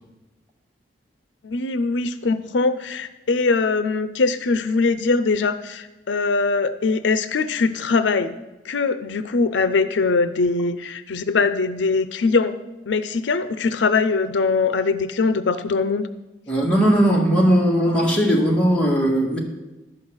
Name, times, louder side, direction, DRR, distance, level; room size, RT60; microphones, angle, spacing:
voice 1, 1.4-8.4 8.6-12.6 12.9-16.1, left 4 dB, 80° left, 12 dB, 0.5 m, -22 dB
voice 2, 16.5-19.4, equal, 5° left, -3 dB, 1.8 m, -18 dB
11.5 x 5.7 x 7.9 m, 1.0 s
head